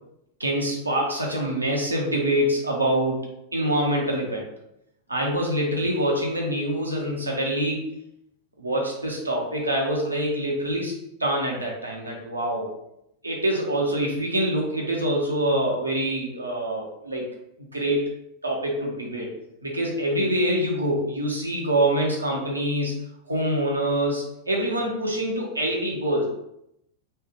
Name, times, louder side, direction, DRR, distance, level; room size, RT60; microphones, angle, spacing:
voice 1, 0.4-3.2 3.5-4.5 5.1-7.9 8.6-10.9 11.2-12.7 13.2-17.2 17.7-18.0 18.4-19.3 19.6-23.0 23.3-26.2, right 1 dB, 80° right, -1 dB, 0.8 m, -25 dB
3.2 x 2.3 x 3.2 m, 0.80 s
figure-of-eight pair, 90°, 0 cm